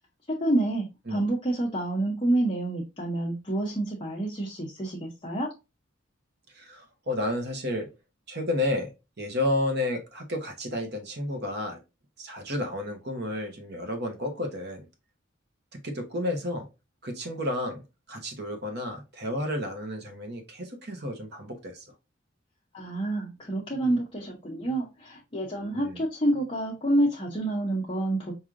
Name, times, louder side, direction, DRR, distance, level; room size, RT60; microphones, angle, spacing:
voice 1, 0.3-5.5 22.7-28.3, right 1 dB, 25° left, 0.8 m, -28 dB
voice 2, 6.5-7.9 8.3-8.9 9.2-11.8 12.2-14.9 15.7-16.7 17.0-21.9 25.7-26.0, left 1 dB, 55° right, 1.0 m, -31 dB
4.7 x 2.7 x 2.5 m
head